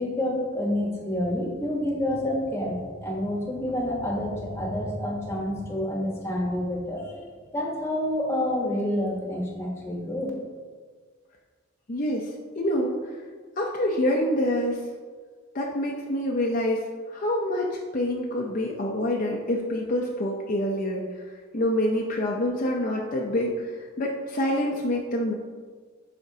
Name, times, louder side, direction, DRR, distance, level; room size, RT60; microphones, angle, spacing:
voice 1, 0.0-7.3 7.5-10.3, left 1 dB, 15° left, -2 dB, 1.1 m, -28 dB
voice 2, 11.9-13.2 13.6-14.8 15.5-16.8 17.1-21.0 21.5-23.7 24.0-25.3, left 1 dB, 40° left, -1 dB, 0.6 m, -26 dB
11.0 x 4.3 x 2.8 m, 1.6 s
head